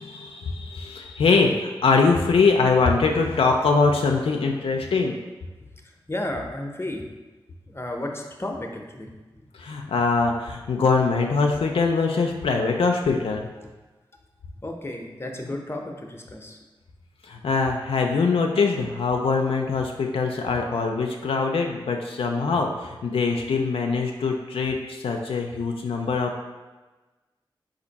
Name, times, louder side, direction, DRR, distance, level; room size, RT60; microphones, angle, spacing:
voice 1, 0.0-5.2 9.6-13.5 17.2-26.4, left 4 dB, 80° left, 2 dB, 0.4 m, -23 dB
voice 2, 5.8-7.1 7.7-9.4 13.6-13.7 14.6-16.6 22.5-22.6, left 1 dB, 25° left, 2 dB, 0.7 m, -33 dB
4.3 x 2.6 x 4.0 m, 1.2 s
cardioid pair, 40°, 9 cm